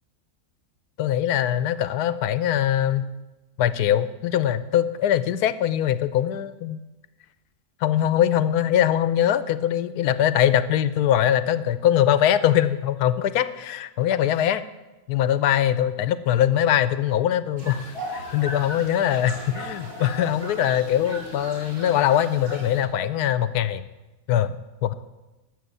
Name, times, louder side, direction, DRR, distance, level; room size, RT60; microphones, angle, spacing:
voice 1, 1.0-3.1 3.6-6.8 7.8-14.6 15.1-23.8 24.3-24.6 24.8-24.9, left 10 dB, 85° left, 14 dB, 1.2 m, -22 dB
sound 1, 17.6-22.8, equal, 85° right, 3.5 m, -37 dB
12.5 x 6.7 x 8.2 m, 1.1 s
omnidirectional pair, 1.6 m